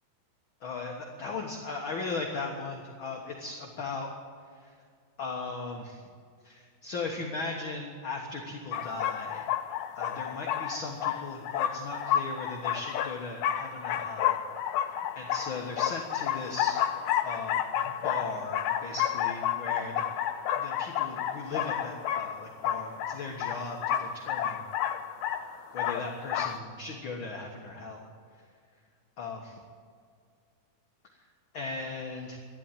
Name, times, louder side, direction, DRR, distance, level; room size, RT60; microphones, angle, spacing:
voice 1, 0.6-4.1 4.6-4.7 5.2-6.0 6.4-9.4 10.0-14.4 15.1-16.8 17.2-20.0 20.6-24.6 25.7-28.0 29.2-29.6 31.5-32.4, left 3 dB, 55° left, 0 dB, 1.4 m, -37 dB
sound 1, 8.7-26.6, left 10 dB, 85° left, 1.7 m, -31 dB
13.0 x 11.5 x 9.1 m, 2.1 s
omnidirectional pair, 4.3 m